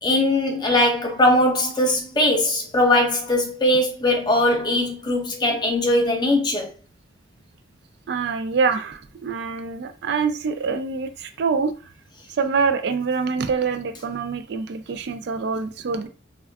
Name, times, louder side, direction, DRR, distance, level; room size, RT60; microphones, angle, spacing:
voice 1, 0.0-6.7, left 1 dB, 20° left, 0.5 m, -20 dB
voice 2, 8.1-11.7 12.4-16.1, right 5 dB, 60° right, 0.3 m, -25 dB
3.5 x 2.2 x 2.3 m
head